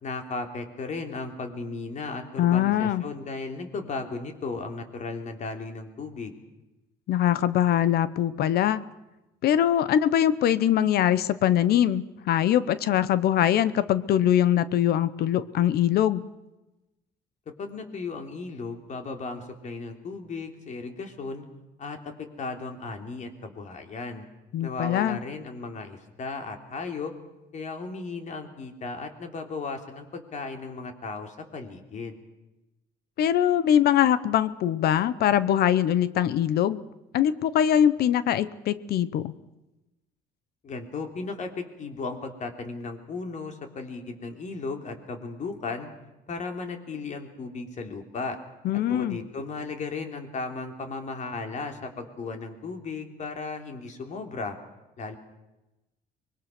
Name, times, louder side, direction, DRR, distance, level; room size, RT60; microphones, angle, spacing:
voice 1, 0.0-6.3 17.6-21.4 21.8-22.1 22.4-24.2 24.6-27.1 27.5-32.2 40.6-45.9 46.3-48.4 48.9-54.6 55.0-55.2, left 3 dB, 45° left, 5 dB, 3.3 m, -35 dB
voice 2, 2.4-3.0 7.1-8.9 9.4-16.2 24.5-25.2 33.2-36.8 37.1-39.3 48.6-49.2, left 10 dB, 70° left, 16 dB, 0.9 m, -22 dB
25.0 x 22.0 x 6.1 m, 1.0 s
cardioid pair, 110°, 17 cm